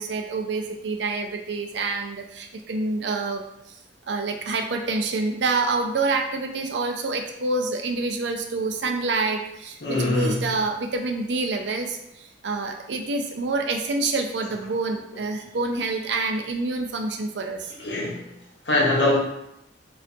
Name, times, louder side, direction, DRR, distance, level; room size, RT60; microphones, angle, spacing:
voice 1, 0.0-3.4 4.1-17.7, right 3 dB, 70° right, 4 dB, 0.4 m, -27 dB
voice 2, 9.8-10.4 17.8-18.3 18.7-19.2, left 2 dB, 70° left, -2 dB, 0.9 m, -22 dB
4.4 x 2.5 x 2.6 m, 0.83 s
head